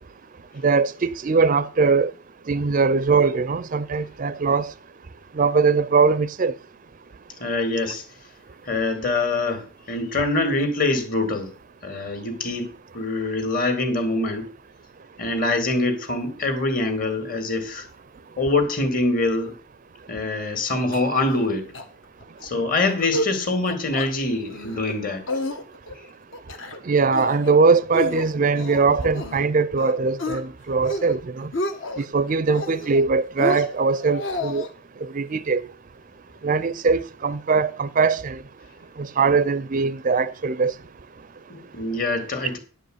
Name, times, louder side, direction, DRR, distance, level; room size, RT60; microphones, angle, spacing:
voice 1, 0.6-2.1 2.5-4.7 5.4-6.5 26.9-31.5 32.0-34.6 35.1-35.6 36.4-38.4 39.0-40.7, right 4 dB, 40° right, 0.4 m, -21 dB
voice 2, 7.4-8.0 8.7-11.5 11.8-14.5 15.2-17.9 18.4-19.6 20.1-21.7 22.4-25.2 41.5-42.6, left 2 dB, 40° left, 2.1 m, -24 dB
sound 1, 20.9-21.5 21.7-21.8 22.2-22.5 22.9-23.3 23.6-24.1 24.5-24.9 25.3-25.9 26.3-26.8 27.1-27.5 27.9-29.4 29.8-30.4 30.8-31.2 31.4-32.1 32.5-33.0 33.4-34.7, left 1 dB, 60° left, 1.3 m, -30 dB
10.0 x 5.1 x 7.8 m
head